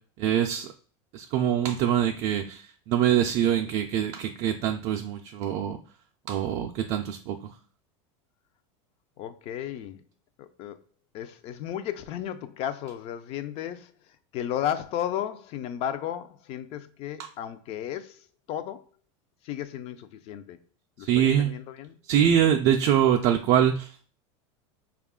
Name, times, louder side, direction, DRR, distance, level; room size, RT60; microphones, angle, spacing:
voice 1, 0.2-0.7 1.1-5.8 6.3-7.4 21.0-21.5 22.1-23.9, right 10 dB, 45° right, 0.4 m, -24 dB
voice 2, 9.2-10.0 10.4-10.8 11.1-18.8 19.4-20.6 21.0-22.0, left 10 dB, 40° left, 0.4 m, -34 dB
4.8 x 2.3 x 3.5 m
supercardioid pair, 145°, 16 cm